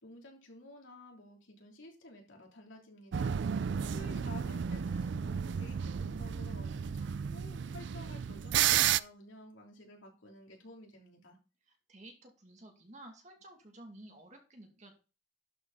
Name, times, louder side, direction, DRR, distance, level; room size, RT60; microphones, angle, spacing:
voice 1, 0.0-3.4 3.9-7.1 7.3-11.4, left 1 dB, 75° left, 0 dB, 3.2 m, -52 dB
sound 1, 3.1-9.0, right 9 dB, 65° right, 0.4 m, -32 dB
voice 2, 11.7-14.9, right 1 dB, 35° right, 3 dB, 2.3 m, -53 dB
12.0 x 5.8 x 4.0 m, 0.32 s
head